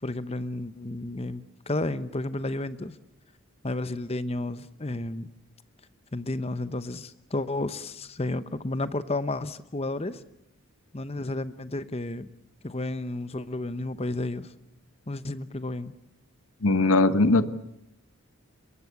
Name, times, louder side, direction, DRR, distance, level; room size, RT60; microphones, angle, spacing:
voice 1, 0.0-3.0 3.6-5.3 6.1-10.2 10.9-12.3 12.6-14.5 15.1-15.9, left 2 dB, 25° left, 14 dB, 0.9 m, -32 dB
voice 2, 16.6-17.5, left 2 dB, 75° left, 13 dB, 1.2 m, -20 dB
23.5 x 22.5 x 8.4 m, 0.79 s
head